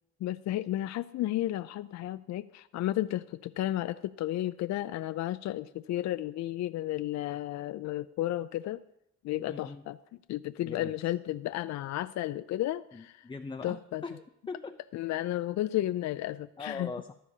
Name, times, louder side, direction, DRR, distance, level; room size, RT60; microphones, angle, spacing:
voice 1, 0.2-8.8 9.2-10.0 10.3-13.2 13.6-14.0 14.9-16.9, left 14 dB, 65° left, 12 dB, 0.4 m, -33 dB
voice 2, 9.5-9.8 10.6-10.9 12.9-13.8 14.0-14.8 16.6-17.1, left 4 dB, 15° left, 6 dB, 0.6 m, -40 dB
14.5 x 12.0 x 2.8 m, 0.81 s
cardioid pair, 90°, 30 cm